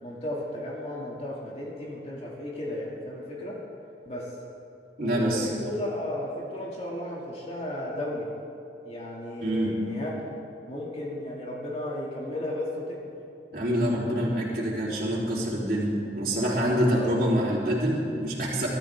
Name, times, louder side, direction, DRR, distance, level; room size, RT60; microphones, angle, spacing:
voice 1, 0.0-3.6 4.0-4.3 5.0-8.3 8.8-10.1 10.7-13.0 16.8-17.2, left 1 dB, 35° left, -4 dB, 2.7 m, -34 dB
voice 2, 5.0-5.5 9.4-9.7 13.5-18.7, equal, 55° right, -7 dB, 3.9 m, -26 dB
23.5 x 13.5 x 3.8 m, 2.7 s
head